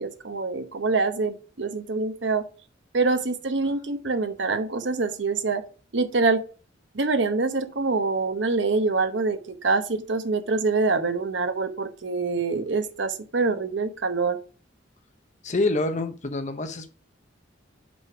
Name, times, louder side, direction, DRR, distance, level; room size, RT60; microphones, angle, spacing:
voice 1, 0.0-2.4 2.9-5.6 5.9-6.4 6.9-14.4, right 3 dB, 70° right, 8 dB, 0.9 m, -25 dB
voice 2, 15.4-16.9, left 2 dB, 40° left, 8 dB, 0.9 m, -26 dB
5.3 x 5.1 x 4.9 m, 0.36 s
head